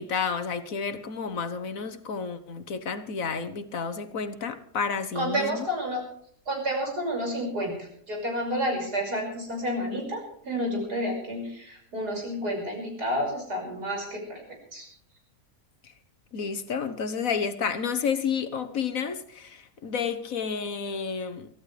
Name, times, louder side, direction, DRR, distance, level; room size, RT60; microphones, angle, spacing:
voice 1, 0.0-5.6 15.8-15.9 16.3-21.5, left 6 dB, 60° left, 1.4 m, -31 dB
voice 2, 5.1-6.0 6.5-14.4 14.7-14.9, equal, 75° right, 6.4 m, -30 dB
24.0 x 14.5 x 3.3 m
omnidirectional pair, 1.7 m